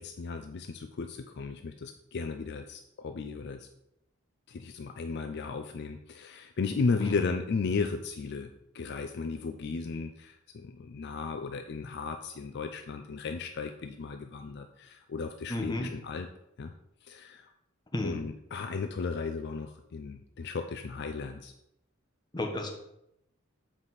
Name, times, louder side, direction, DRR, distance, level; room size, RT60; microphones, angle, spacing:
voice 1, 0.0-3.7 4.5-16.3 16.6-16.7 17.0-17.5 18.0-21.5, left 4 dB, 55° left, 6 dB, 0.4 m, -35 dB
voice 2, 15.5-15.9 17.9-18.2 22.3-22.7, left 1 dB, 20° left, 2 dB, 1.1 m, -32 dB
7.4 x 5.0 x 4.0 m, 0.81 s
head